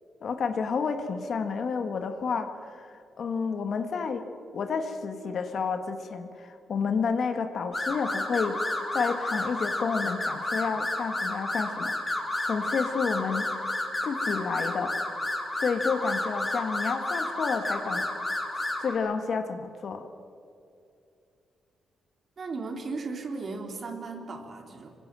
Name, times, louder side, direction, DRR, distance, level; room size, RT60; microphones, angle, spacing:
voice 1, 0.2-4.2 4.5-8.6 8.9-13.5 14.0-15.0 15.6-18.0 18.6-20.1, left 5 dB, 45° left, 7 dB, 1.7 m, -30 dB
sound 1, 7.7-18.9, left 1 dB, 15° left, 4.3 m, -31 dB
voice 2, 22.4-25.0, right 3 dB, 35° right, 3 dB, 3.5 m, -36 dB
26.5 x 24.5 x 7.6 m, 2.6 s
cardioid pair, 155°, 0 cm